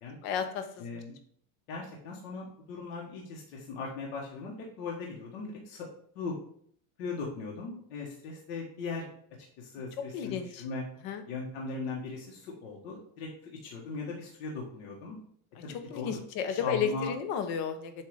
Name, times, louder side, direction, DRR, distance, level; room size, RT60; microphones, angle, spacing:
voice 1, 0.2-1.0 10.1-10.6 11.0-11.2 15.9-17.9, left 7 dB, 60° left, 8 dB, 1.0 m, -32 dB
voice 2, 0.8-1.1 1.7-5.9 6.1-6.4 7.0-9.1 9.6-10.8 11.3-15.2 15.6-16.2 16.5-17.1, left 4 dB, 80° left, -2 dB, 1.4 m, -39 dB
7.5 x 2.8 x 4.9 m, 0.63 s
cardioid pair, 155°, 40 cm